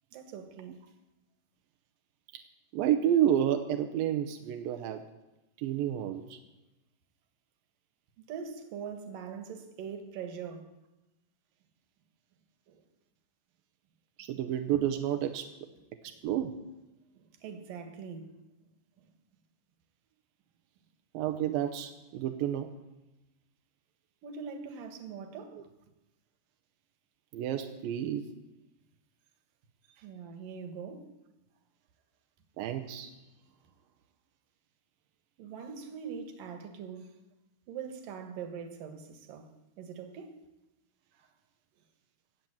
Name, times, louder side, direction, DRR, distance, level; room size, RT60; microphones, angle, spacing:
voice 1, 0.1-0.9 8.2-10.7 12.7-12.8 16.1-16.2 17.2-18.4 24.2-25.6 29.9-31.1 35.4-37.1 37.7-40.4 41.1-41.3, right 6 dB, 65° right, 2.8 m, -42 dB
voice 2, 2.7-5.0 5.6-6.4 14.2-15.5 16.0-16.6 21.1-22.7 27.3-28.3 32.6-33.1, right 10 dB, 80° right, 2.2 m, -30 dB
16.5 x 7.7 x 8.7 m
omnidirectional pair, 4.8 m